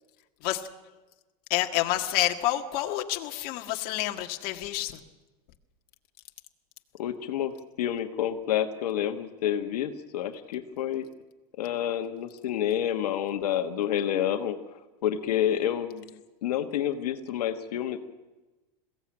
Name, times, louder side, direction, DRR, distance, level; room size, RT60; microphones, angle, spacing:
voice 1, 1.5-5.0, left 14 dB, 50° left, 4 dB, 1.8 m, -28 dB
voice 2, 7.0-7.5 7.8-11.0 11.6-14.6 15.0-16.0 16.4-18.0, left 10 dB, 80° left, 7 dB, 1.5 m, -28 dB
21.5 x 16.5 x 9.0 m, 1.2 s
supercardioid pair, 135°, 20 cm